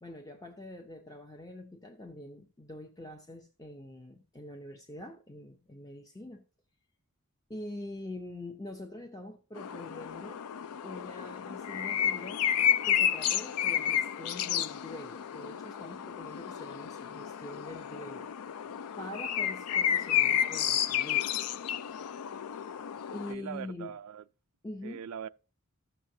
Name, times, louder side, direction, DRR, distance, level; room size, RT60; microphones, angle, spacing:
voice 1, 0.0-6.4 7.5-10.4 10.8-12.4 12.8-18.3 19.0-21.3 23.1-23.9 24.6-25.0, left 1 dB, 15° left, 0.6 m, -44 dB
sound 1, 9.6-23.3, left 9 dB, 80° left, 0.4 m, -31 dB
voice 2, 23.3-24.2 24.8-25.3, right 8 dB, 75° right, 0.4 m, -41 dB
15.0 x 6.4 x 2.7 m
head